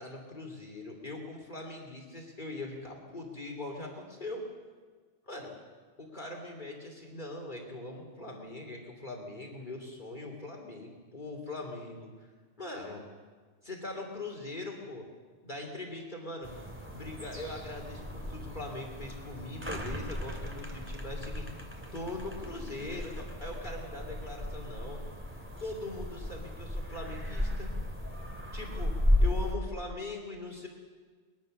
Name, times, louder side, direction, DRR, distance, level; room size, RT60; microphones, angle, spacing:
voice 1, 0.0-4.4 5.3-5.6 6.0-12.3 12.6-13.0 13.6-15.0 15.4-16.6 16.9-21.5 21.9-25.0 25.6-27.7 28.5-30.7, left 2 dB, 45° left, 1 dB, 3.3 m, -41 dB
sound 1, 16.4-29.5, left 1 dB, 10° right, 2.6 m, -34 dB
22.5 x 20.5 x 6.7 m, 1.5 s
omnidirectional pair, 1.1 m